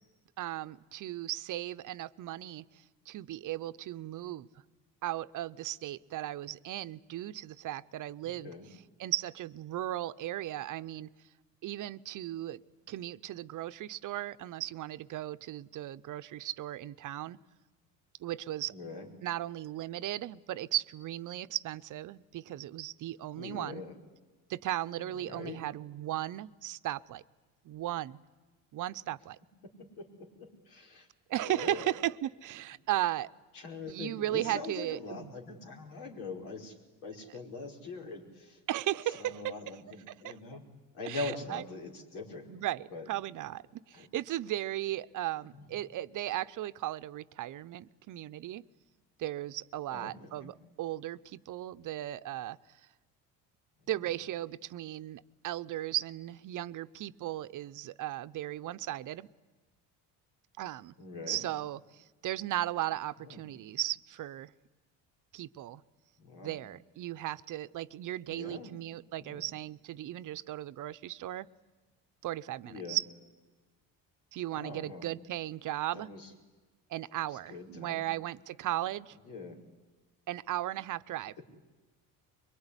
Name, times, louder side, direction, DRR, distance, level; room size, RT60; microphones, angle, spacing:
voice 1, 0.4-4.5 5.0-8.5 9.0-11.1 11.6-12.6 12.9-17.4 18.2-18.7 19.2-23.8 24.5-27.2 27.6-28.2 28.7-29.4 31.3-33.3 33.9-35.3 38.7-39.5 40.2-40.3 41.0-41.6 42.5-48.6 49.2-52.6 53.9-59.3 60.6-60.9 61.3-64.5 65.3-65.8 66.4-71.5 72.2-73.0 74.3-76.1 76.9-79.2 80.3-81.4, right 14 dB, 50° right, 13 dB, 0.8 m, -36 dB
voice 2, 8.2-8.7 18.7-19.1 23.3-24.0 25.0-25.6 29.6-31.1 31.4-31.9 33.5-38.6 39.1-40.6 40.9-42.6 42.9-43.1 43.9-44.1 45.5-45.7 49.9-50.5 53.8-54.1 61.0-61.4 63.2-63.4 66.2-66.6 68.3-68.7 69.2-69.4 72.6-73.0 74.5-75.1 75.9-76.3 77.3-78.0 79.3-79.6, left 3 dB, 75° left, 3 dB, 5.2 m, -43 dB
23.5 x 22.5 x 9.9 m, 1.3 s
cardioid pair, 110°, 39 cm